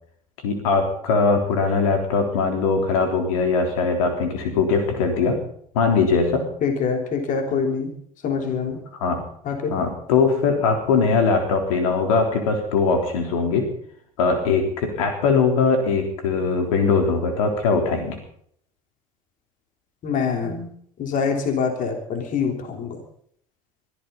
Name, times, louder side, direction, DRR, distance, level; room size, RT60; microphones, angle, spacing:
voice 1, 0.4-5.4 5.7-6.5 9.0-9.2 9.7-13.7 14.2-18.2, left 4 dB, 70° left, 4 dB, 3.7 m, -21 dB
voice 2, 6.6-7.9 8.2-8.8 9.5-9.7 20.0-20.7 21.0-23.0, left 5 dB, 45° left, 4 dB, 3.4 m, -25 dB
23.5 x 14.0 x 4.1 m, 0.64 s
figure-of-eight pair, 70°, 18 cm